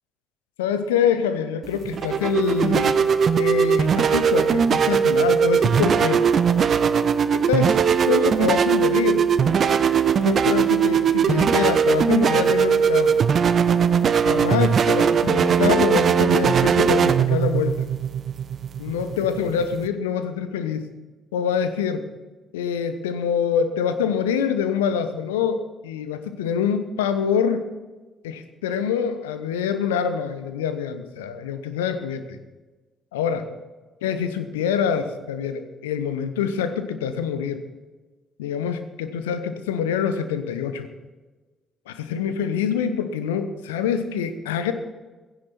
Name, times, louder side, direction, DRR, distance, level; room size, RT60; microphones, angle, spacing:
voice 1, 0.6-3.0 3.4-6.2 7.5-7.8 8.0-9.2 10.2-13.2 14.2-17.8 18.8-20.9 21.3-22.0 22.5-27.7 28.2-32.4 33.1-33.5 34.0-37.6 38.4-40.9 41.9-44.7, left 7 dB, 75° left, 10 dB, 1.1 m, -25 dB
sound 1, 1.6-19.9, right 7 dB, 45° right, 0.8 m, -19 dB
16.0 x 15.5 x 4.5 m, 1.2 s
figure-of-eight pair, 45°, 0 cm